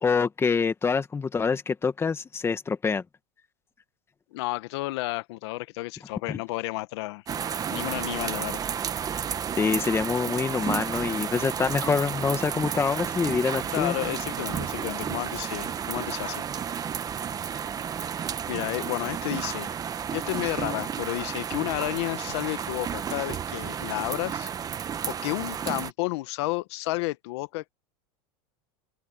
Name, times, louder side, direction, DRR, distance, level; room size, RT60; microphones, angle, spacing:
voice 1, 0.0-3.0 6.3-6.4 9.6-13.9, left 5 dB, 15° left, 1.9 m, -26 dB
voice 2, 4.3-7.2 7.7-8.6 13.7-16.5 18.5-19.7 20.1-27.7, left 20 dB, 75° left, 1.1 m, -31 dB
sound 1, 7.3-25.9, right 8 dB, 25° right, 1.2 m, -32 dB
supercardioid pair, 125°, 14 cm